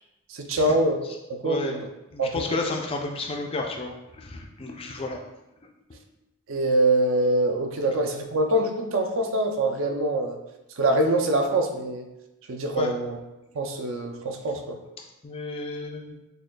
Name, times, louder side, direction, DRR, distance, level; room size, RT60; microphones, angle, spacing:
voice 1, 0.3-1.0 1.3-1.9 2.2-2.6 6.5-10.4 10.8-12.1 12.5-13.2 13.5-14.8, right 1 dB, 60° right, 4 dB, 0.4 m, -24 dB
voice 2, 1.4-1.7 2.1-5.2 5.9-6.0 12.7-12.9 15.2-16.2, left 3 dB, 25° left, 2 dB, 0.3 m, -32 dB
6.3 x 2.2 x 2.2 m, 0.97 s
head